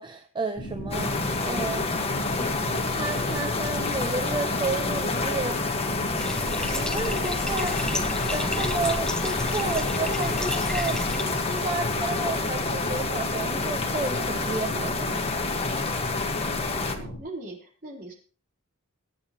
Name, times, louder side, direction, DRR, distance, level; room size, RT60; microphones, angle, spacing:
voice 1, 0.0-1.9 2.3-2.6 2.9-5.7 6.7-7.8 8.3-15.1, right 3 dB, 20° right, 6 dB, 0.8 m, -32 dB
sound 1, 0.6-17.2, equal, 55° left, 3.6 m, -36 dB
sound 2, 0.9-17.0, left 3 dB, 25° left, 1.5 m, -28 dB
Bathtub (filling or washing), 6.2-11.2, left 1 dB, 5° left, 0.9 m, -33 dB
voice 2, 16.5-18.1, right 2 dB, 40° right, -1 dB, 3.9 m, -41 dB
23.5 x 8.8 x 3.0 m, 0.38 s
head